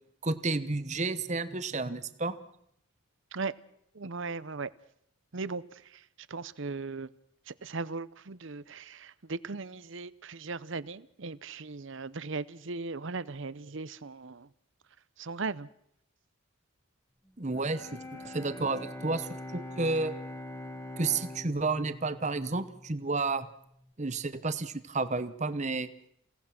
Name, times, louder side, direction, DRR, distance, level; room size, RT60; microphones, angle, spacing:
voice 1, 0.2-2.3 17.4-18.0 18.2-20.1 21.0-23.5 24.0-25.9, right 3 dB, 35° right, 1.0 m, -31 dB
voice 2, 3.9-4.7 5.3-7.1 7.5-14.5 15.2-15.7, right 4 dB, 60° right, 0.7 m, -38 dB
Bowed string instrument, 17.5-23.5, left 1 dB, 15° left, 1.8 m, -43 dB
28.5 x 17.5 x 6.0 m
head